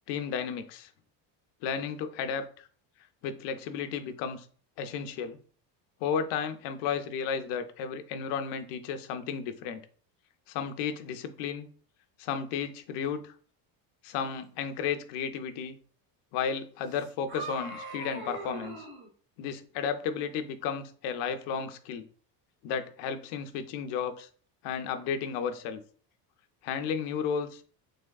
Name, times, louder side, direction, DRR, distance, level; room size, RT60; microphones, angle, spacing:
voice 1, 0.1-0.9 1.6-2.7 3.2-4.5 4.8-5.4 6.0-9.8 10.5-11.7 12.2-13.3 14.0-15.8 16.3-18.9 19.4-22.1 22.6-24.3 24.6-25.8 26.6-27.7, left 7 dB, 65° left, 8 dB, 0.5 m, -33 dB
sound 1, 16.9-19.1, right 2 dB, 30° right, 0.4 m, -40 dB
3.4 x 3.0 x 2.3 m, 0.43 s
cardioid pair, 170°, 45 cm